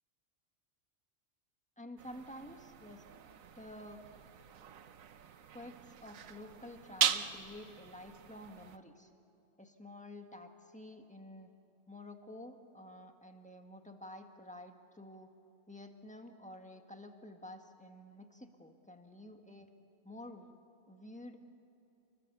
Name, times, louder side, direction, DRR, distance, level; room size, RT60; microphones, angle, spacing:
voice 1, 1.8-3.0 3.5-4.0 5.5-9.1 9.6-11.5 11.9-15.3 15.7-19.7 20.0-20.6 20.9-21.4, left 1 dB, 5° left, 4 dB, 1.6 m, -50 dB
sound 1, 2.0-8.8, right 8 dB, 85° right, 1.3 m, -39 dB
29.5 x 21.0 x 6.9 m, 2.8 s
omnidirectional pair, 1.4 m